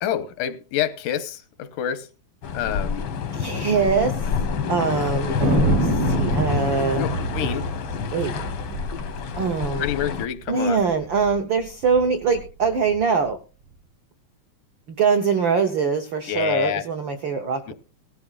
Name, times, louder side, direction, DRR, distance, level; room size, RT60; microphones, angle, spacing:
voice 1, 0.0-2.1 2.5-3.0 7.0-7.7 9.8-10.8 16.3-16.8 17.7-17.8, left 11 dB, 90° left, 2.5 m, -27 dB
sound 1, 2.4-10.3, left 6 dB, 75° left, 1.2 m, -27 dB
voice 2, 3.3-4.2 4.7-7.0 8.1-8.3 9.4-9.9 10.5-13.4 14.9-17.7, right 5 dB, 85° right, 1.0 m, -23 dB
Thunder, 5.4-10.2 10.5-10.6 10.8-11.3 11.8-13.0, right 2 dB, 55° right, 1.7 m, -26 dB
18.0 x 13.0 x 2.4 m
omnidirectional pair, 3.6 m